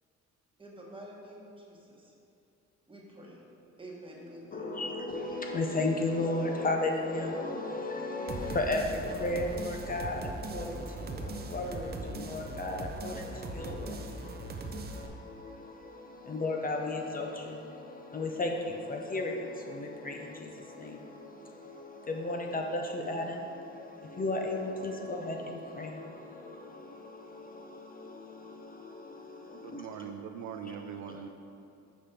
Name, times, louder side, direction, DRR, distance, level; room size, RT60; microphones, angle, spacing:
voice 1, 0.6-2.1 2.9-3.5 3.8-4.7, right 1 dB, 15° right, -3 dB, 1.3 m, -48 dB
voice 2, 4.5-29.8 31.0-31.1, left 2 dB, 30° left, 2 dB, 0.6 m, -35 dB
sound 1, 8.3-15.1, right 3 dB, 35° right, 0.5 m, -40 dB
voice 3, 29.5-31.3, right 7 dB, 80° right, 6 dB, 0.5 m, -41 dB
5.2 x 5.1 x 4.3 m, 2.7 s
cardioid pair, 90°, 30 cm